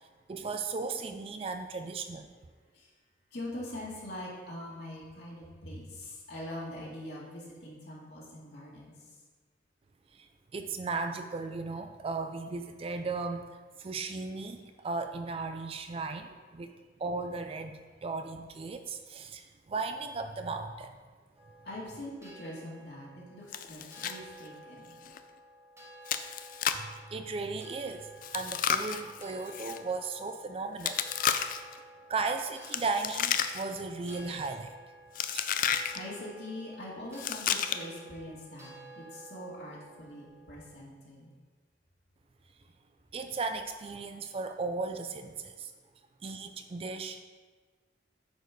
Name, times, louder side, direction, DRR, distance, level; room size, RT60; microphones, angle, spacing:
voice 1, 0.0-2.3 10.1-13.5 13.8-16.7 17.0-21.0 26.7-26.8 27.1-31.0 31.3-31.5 32.1-34.7 35.3-35.5 43.1-45.7 46.2-47.2, right 4 dB, 30° right, 7 dB, 0.3 m, -36 dB
voice 2, 3.3-9.2 21.6-25.0 35.9-41.3, left 1 dB, 65° left, -6 dB, 2.0 m, -43 dB
sound 1, 21.4-40.8, right 2 dB, 15° right, 1.4 m, -53 dB
Chewing mastication, 23.5-24.2 24.5-24.6 25.1-25.2 26.1-26.9 28.2-29.8 30.8-31.7 32.6-33.8 34.1-34.5 35.2-36.0 37.1-38.0, left 8 dB, 50° left, 0.4 m, -32 dB
9.2 x 4.5 x 4.7 m, 1.4 s
head